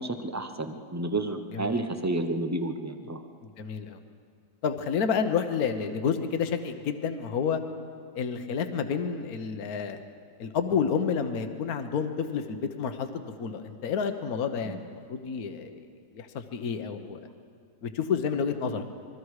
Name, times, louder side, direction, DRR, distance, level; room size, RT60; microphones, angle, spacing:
voice 1, 0.0-3.2 14.6-14.8, right 2 dB, 15° right, 7 dB, 0.5 m, -31 dB
voice 2, 3.4-4.0 4.6-7.6 8.1-10.0 10.4-13.1 13.4-15.9 16.1-17.2 17.8-18.8, left 6 dB, 60° left, 8 dB, 1.5 m, -30 dB
27.0 x 22.0 x 4.9 m, 2.2 s
omnidirectional pair, 1.8 m